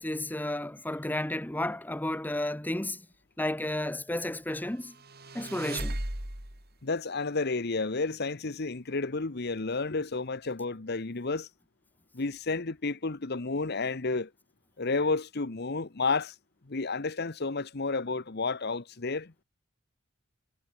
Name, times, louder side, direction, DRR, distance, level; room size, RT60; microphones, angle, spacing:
voice 1, 0.0-3.0 3.4-4.9 5.3-6.0, left 1 dB, 10° left, 0.9 m, -32 dB
sound 1, 4.9-6.7, right 1 dB, 50° right, 4.9 m, -36 dB
voice 2, 6.8-11.5 12.1-14.3 14.8-16.3 16.7-19.3, left 3 dB, 55° left, 1.1 m, -31 dB
head